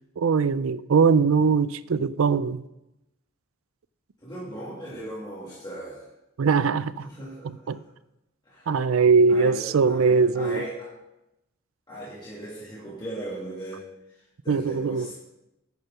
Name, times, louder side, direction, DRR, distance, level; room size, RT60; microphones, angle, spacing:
voice 1, 0.2-2.6 6.4-7.1 7.4-7.8 8.7-10.6 14.5-15.1, right 5 dB, 85° right, 0.5 m, -21 dB
voice 2, 4.2-6.0 7.0-7.8 8.4-8.8 9.3-10.9 11.9-15.1, right 1 dB, 20° left, 2.5 m, -38 dB
10.5 x 6.6 x 5.6 m
head